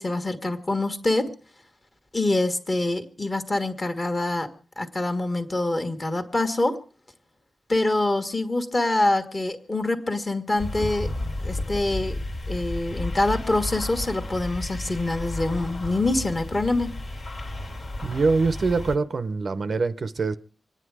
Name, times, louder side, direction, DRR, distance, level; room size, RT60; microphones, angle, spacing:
voice 1, 0.0-1.3 2.1-4.5 4.8-6.8 7.7-11.1 11.4-12.2 12.5-16.9, left 2 dB, 25° left, 1.5 m, -25 dB
sound 1, 10.6-19.0, left 2 dB, 55° left, 1.9 m, -32 dB
voice 2, 18.0-20.4, right 4 dB, 45° right, 0.6 m, -24 dB
26.0 x 9.8 x 4.8 m
wide cardioid pair, 165°, 0 cm